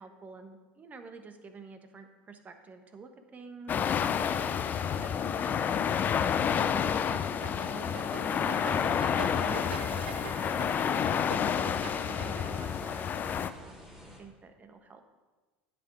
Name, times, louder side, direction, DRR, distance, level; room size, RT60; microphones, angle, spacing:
voice 1, 0.0-4.4 5.0-6.0 6.4-8.9 9.3-11.3 11.7-13.8 14.2-15.0, right 4 dB, 30° right, 7 dB, 1.2 m, -48 dB
sound 1, 3.7-13.5, left 8 dB, 35° left, 0.5 m, -29 dB
sound 2, 3.8-14.2, left 1 dB, 10° right, 2.8 m, -51 dB
sound 3, 7.1-12.7, right 6 dB, 90° right, 0.6 m, -44 dB
9.9 x 8.0 x 4.9 m, 1.3 s
hypercardioid pair, 80°, 5 cm